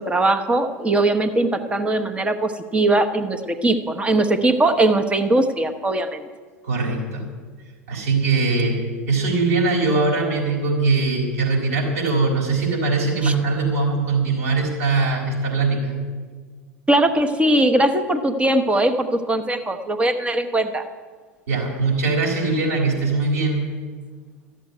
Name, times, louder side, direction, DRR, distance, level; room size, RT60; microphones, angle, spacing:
voice 1, 0.0-6.3 13.2-13.3 16.9-20.8, right 2 dB, 15° right, 8 dB, 1.2 m, -20 dB
voice 2, 6.6-7.3 7.9-15.9 21.5-23.7, right 3 dB, 70° right, -2 dB, 4.2 m, -21 dB
13.5 x 7.7 x 9.3 m, 1.5 s
figure-of-eight pair, 75°, 8 cm